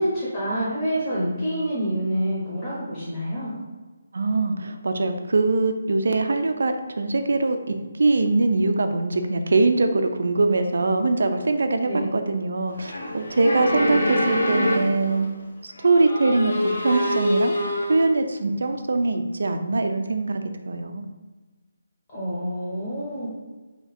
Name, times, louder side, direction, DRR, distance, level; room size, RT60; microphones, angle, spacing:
voice 1, 0.0-3.5 11.9-12.0 22.1-23.3, equal, 20° left, -10 dB, 0.8 m, -27 dB
voice 2, 4.1-7.6 8.0-15.3 15.6-17.5 17.9-21.0, right 3 dB, 65° right, 7 dB, 0.4 m, -22 dB
sound 1, 12.7-15.2 15.8-18.0, equal, 65° left, 0.8 m, -25 dB
2.9 x 2.5 x 4.1 m, 1.2 s
hypercardioid pair, 175°, 0 cm